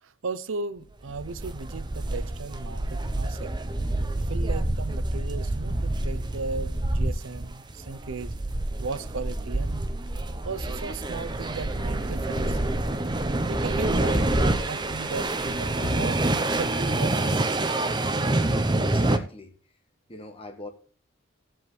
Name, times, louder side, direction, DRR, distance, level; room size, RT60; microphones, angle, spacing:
voice 1, 0.0-3.6 4.3-8.3 8.8-9.8 10.4-12.6 13.5-14.3 14.7-17.4, right 4 dB, 75° right, 0.6 m, -36 dB
sound 1, 1.1-19.2, right 2 dB, 20° right, 0.6 m, -27 dB
sound 2, 14.1-15.2 15.8-16.9, left 1 dB, 70° left, 1.7 m, -37 dB
voice 2, 18.2-19.5 20.1-20.7, left 2 dB, 25° left, 1.3 m, -42 dB
15.5 x 7.8 x 3.1 m
head